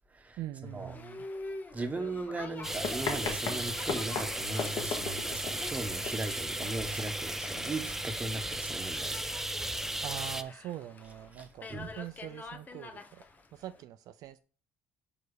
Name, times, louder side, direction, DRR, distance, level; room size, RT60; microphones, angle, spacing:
voice 1, 0.4-1.2 10.0-13.2 13.5-14.4, right 12 dB, 65° right, 0.5 m, -43 dB
Boat Water vehicle, 0.7-13.8, left 3 dB, 25° left, 1.1 m, -47 dB
voice 2, 1.7-9.2 11.7-11.9, right 2 dB, 20° right, 1.2 m, -38 dB
Run, 2.5-8.0, left 5 dB, 55° left, 1.8 m, -39 dB
sound 1, 2.6-10.4, right 1 dB, 5° right, 0.6 m, -35 dB
5.5 x 4.6 x 4.8 m
supercardioid pair, 95°, 7 cm